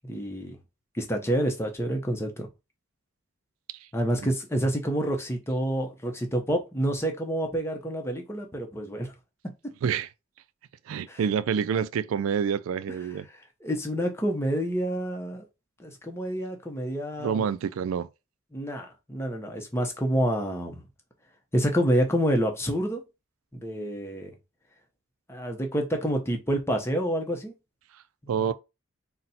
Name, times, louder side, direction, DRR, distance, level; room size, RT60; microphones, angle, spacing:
voice 1, 0.0-0.6 0.9-2.5 3.9-9.1 11.1-11.2 13.6-15.4 15.8-17.5 18.5-20.8 21.5-23.0 23.5-24.3 25.3-27.5, equal, 10° left, 0.7 m, -28 dB
voice 2, 10.9-13.3 17.2-18.1 28.3-28.5, right 7 dB, 90° right, 0.3 m, -27 dB
4.1 x 2.1 x 4.1 m
head